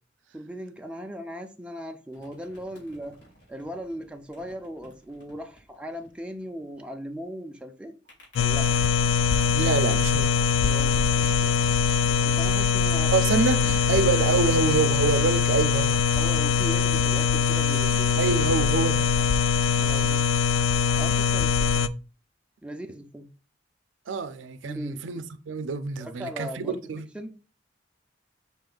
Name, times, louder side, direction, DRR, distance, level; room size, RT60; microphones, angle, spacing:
voice 1, 0.3-3.2 3.5-7.9 8.4-8.8 10.6-11.6 12.0-13.1 16.2-18.4 19.8-20.2 21.0-21.9 22.6-23.3 24.6-25.0 26.0-26.8 27.1-27.3, equal, 5° right, 0.4 m, -38 dB
sound 1, 2.1-7.0 8.0-15.1 15.8-18.1 18.4-19.7, equal, 60° left, 2.3 m, -49 dB
sound 2, 8.4-21.9, left 6 dB, 80° left, 0.3 m, -22 dB
voice 2, 9.5-10.4 13.1-16.0 18.2-19.1 24.1-27.1, right 5 dB, 80° right, 0.5 m, -26 dB
5.3 x 2.5 x 3.8 m
head